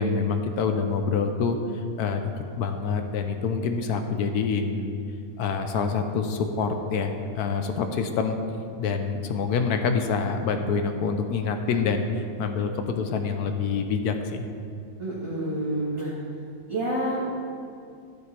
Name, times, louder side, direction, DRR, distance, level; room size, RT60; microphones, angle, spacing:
voice 1, 0.0-1.6 2.0-5.0 5.4-8.4 8.8-14.5, left 5 dB, 80° left, 6 dB, 1.1 m, -26 dB
voice 2, 15.0-16.1 16.7-17.3, right 1 dB, 20° right, -7 dB, 1.2 m, -28 dB
12.0 x 8.0 x 3.3 m, 2.3 s
omnidirectional pair, 1.7 m